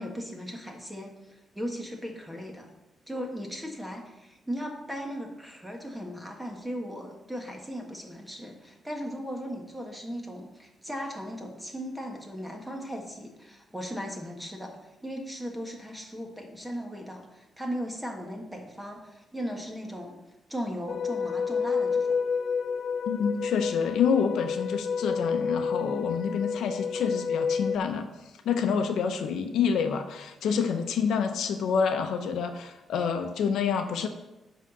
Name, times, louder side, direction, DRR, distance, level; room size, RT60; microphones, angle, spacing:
voice 1, 0.0-2.7 3.1-14.8 15.0-20.2 20.5-22.2, equal, 5° right, 1 dB, 1.2 m, -37 dB
sound 1, 20.9-27.8, left 5 dB, 50° left, 0.4 m, -29 dB
voice 2, 23.1-28.1 28.4-34.1, left 6 dB, 80° left, 6 dB, 0.9 m, -27 dB
10.5 x 4.1 x 6.8 m, 0.98 s
wide cardioid pair, 175°, 0 cm